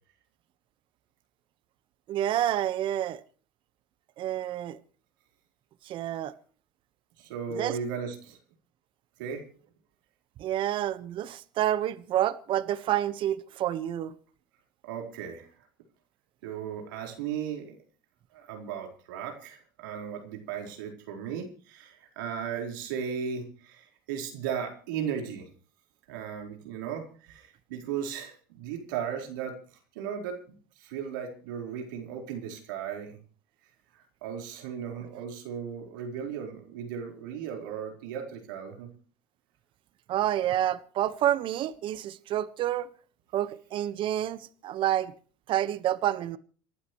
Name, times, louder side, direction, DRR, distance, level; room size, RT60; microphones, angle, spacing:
voice 1, 2.1-3.2 4.2-4.8 5.9-6.3 7.6-7.8 10.4-14.1 40.1-42.9 43.3-45.1 45.5-46.4, right 12 dB, 55° right, 1.3 m, -28 dB
voice 2, 7.2-8.4 9.2-9.4 14.8-15.5 16.4-17.8 18.3-25.5 26.1-29.6 29.9-30.4 30.8-33.2 34.2-38.9, right 7 dB, 85° right, 4.5 m, -36 dB
28.0 x 12.0 x 3.2 m
supercardioid pair, 95°, 10 cm